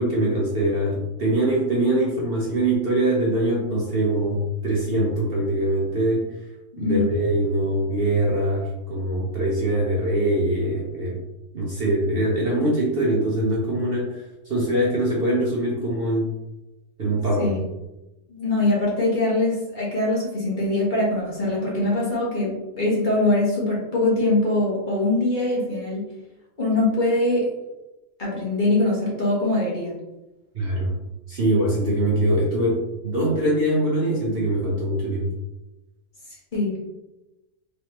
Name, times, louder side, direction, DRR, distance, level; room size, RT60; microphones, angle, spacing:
voice 1, 0.0-6.3 6.8-11.2 11.5-14.2 14.5-16.3 17.0-17.5 30.5-31.0 31.3-35.3, right 1 dB, 50° right, -4 dB, 0.8 m, -23 dB
voice 2, 6.7-7.1 17.4-17.6 18.3-26.1 26.6-27.5 28.2-29.9 36.5-36.8, left 2 dB, 35° left, -5 dB, 1.2 m, -22 dB
4.0 x 3.3 x 2.9 m, 0.98 s
omnidirectional pair, 1.5 m